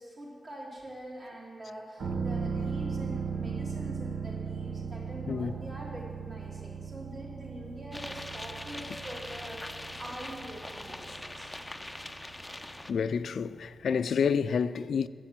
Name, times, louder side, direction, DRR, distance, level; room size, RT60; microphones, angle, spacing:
voice 1, 0.0-11.5, right 1 dB, 45° right, 3.3 m, -44 dB
sound 1, 2.0-13.6 13.9-14.0, right 5 dB, 85° right, 1.1 m, -38 dB
sound 2, 7.9-12.9, left 1 dB, 10° left, 0.4 m, -42 dB
voice 2, 12.9-15.1, left 6 dB, 80° left, 0.3 m, -29 dB
10.5 x 7.5 x 7.5 m
wide cardioid pair, 125°, 0 cm